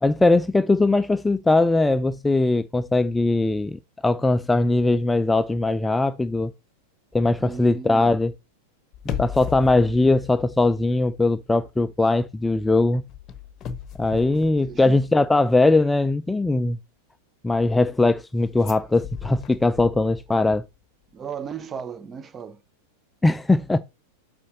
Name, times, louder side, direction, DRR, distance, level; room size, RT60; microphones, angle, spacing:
voice 1, 0.0-6.5 7.1-8.3 9.2-13.0 14.0-16.8 17.4-20.6 23.2-23.8, left 2 dB, 5° left, 0.4 m, -20 dB
voice 2, 7.4-8.2 14.6-15.0 20.3-20.6 21.1-22.6, right 6 dB, 20° right, 0.7 m, -36 dB
sound 1, 8.9-11.2 11.5-11.8 13.1-15.3 18.6-20.5 20.8-20.9, left 9 dB, 30° left, 1.1 m, -36 dB
8.4 x 5.1 x 3.9 m
figure-of-eight pair, 90°, 0 cm